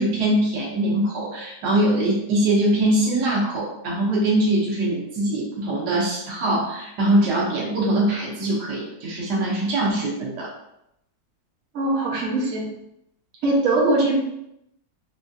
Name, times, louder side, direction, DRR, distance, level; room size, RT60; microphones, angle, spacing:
voice 1, 0.0-10.5, right 1 dB, 90° right, -3 dB, 1.4 m, -22 dB
voice 2, 11.7-12.7 13.4-14.2, right 2 dB, 60° right, -5 dB, 1.3 m, -21 dB
4.2 x 2.6 x 2.3 m, 0.82 s
omnidirectional pair, 1.7 m